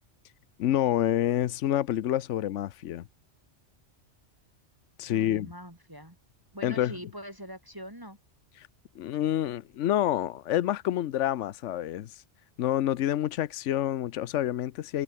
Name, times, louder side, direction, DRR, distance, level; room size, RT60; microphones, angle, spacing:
voice 1, 0.6-3.0 5.0-5.5 6.6-6.9 8.6-8.7 9.0-12.2 12.6-15.0, left 12 dB, 80° left, 1.0 m, -28 dB
voice 2, 5.1-6.2 6.5-8.2, equal, 15° right, 4.9 m, -43 dB
omnidirectional pair, 1.2 m